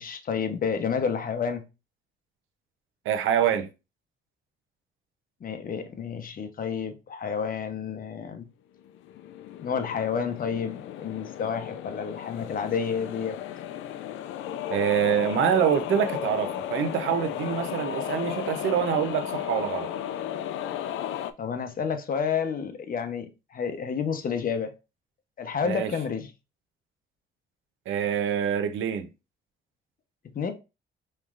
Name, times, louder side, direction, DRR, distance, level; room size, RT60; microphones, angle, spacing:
voice 1, 0.0-1.6 5.4-8.5 9.6-13.4 21.4-24.7 25.4-26.3 30.3-30.5, left 6 dB, 45° left, 0.9 m, -30 dB
voice 2, 3.1-3.7 14.7-19.9 25.6-25.9 27.9-29.1, right 8 dB, 80° right, 0.7 m, -25 dB
sound 1, 8.9-21.3, left 10 dB, 80° left, 0.5 m, -34 dB
5.3 x 3.2 x 2.5 m
cardioid pair, 90°, 20 cm